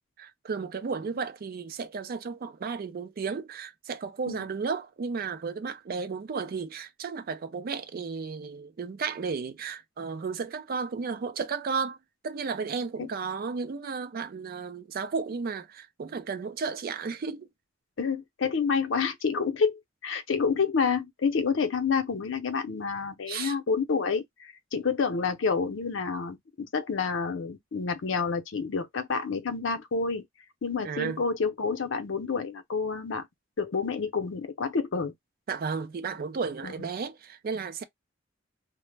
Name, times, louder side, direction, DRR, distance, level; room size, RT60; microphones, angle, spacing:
voice 1, 0.2-12.0 12.2-17.5 23.3-23.5 30.8-31.2 35.5-37.8, right 5 dB, 50° right, 0.4 m, -33 dB
voice 2, 18.0-30.2 30.6-33.3 33.6-35.1 36.6-36.7, left 5 dB, 75° left, 0.6 m, -29 dB
2.1 x 2.0 x 3.2 m
head